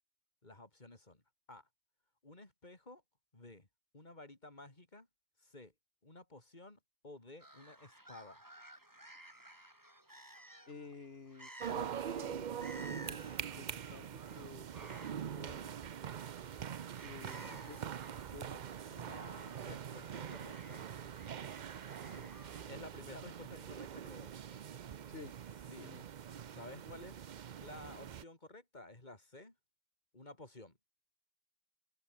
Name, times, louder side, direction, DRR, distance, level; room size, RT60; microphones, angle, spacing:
voice 1, 0.4-1.2 1.5-1.7 2.2-3.0 3.3-3.7 3.9-5.1 5.4-5.7 6.0-8.4 18.9-20.9 22.2-22.3 22.7-24.3 25.7-25.9 26.5-27.3 27.6-29.6 30.1-30.8, left 2 dB, 45° left, 3.7 m, -53 dB
sound 1, 7.4-22.6, right 1 dB, 15° right, 3.4 m, -56 dB
voice 2, 10.7-15.8 17.0-17.9 18.3-18.7 22.0-22.3 25.1-25.3 25.8-26.1, left 4 dB, 65° left, 2.1 m, -53 dB
sound 2, 11.6-28.2, right 8 dB, 50° right, 0.7 m, -44 dB
omnidirectional pair, 1.1 m